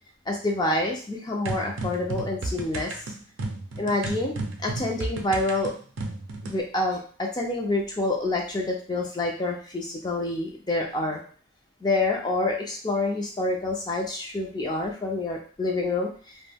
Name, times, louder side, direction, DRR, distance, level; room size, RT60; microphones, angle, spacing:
voice 1, 0.3-2.9 3.8-5.7 6.4-11.2 11.8-16.4, left 2 dB, 20° left, 0 dB, 0.3 m, -27 dB
sound 1, 1.5-6.6, right 2 dB, 80° right, 0.4 m, -33 dB
2.2 x 2.1 x 3.3 m, 0.43 s
head